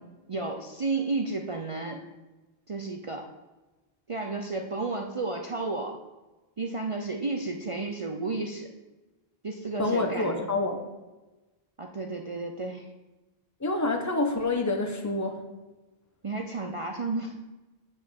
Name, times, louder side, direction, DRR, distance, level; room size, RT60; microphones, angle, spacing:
voice 1, 0.3-2.1 2.7-3.3 4.1-6.0 6.6-8.7 9.4-10.4 11.8-12.9 16.2-17.4, right 3 dB, 35° right, 2 dB, 0.7 m, -32 dB
voice 2, 9.8-10.8 13.6-15.4, left 2 dB, 15° left, 3 dB, 1.1 m, -27 dB
8.0 x 5.4 x 7.1 m, 1.1 s
omnidirectional pair, 1.1 m